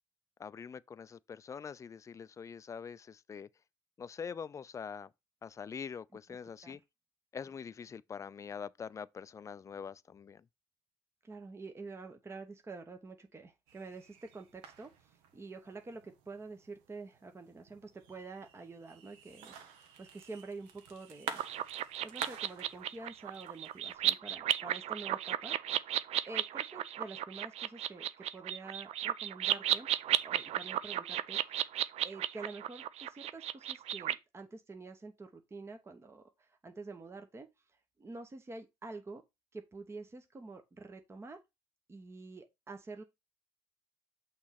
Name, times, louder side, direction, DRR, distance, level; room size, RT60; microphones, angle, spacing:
voice 1, 0.4-3.5 4.0-5.1 5.4-6.8 7.3-10.4, left 6 dB, 25° left, 0.3 m, -44 dB
voice 2, 11.2-21.4 22.0-29.9 30.2-31.6 32.0-37.5 38.0-39.2 39.5-41.4 41.9-43.0, right 3 dB, 20° right, 0.8 m, -48 dB
sound 1, 13.7-23.9, right 7 dB, 85° right, 1.0 m, -49 dB
sound 2, 21.4-34.1, right 12 dB, 55° right, 0.5 m, -34 dB
6.2 x 3.1 x 5.7 m
supercardioid pair, 90°, 13 cm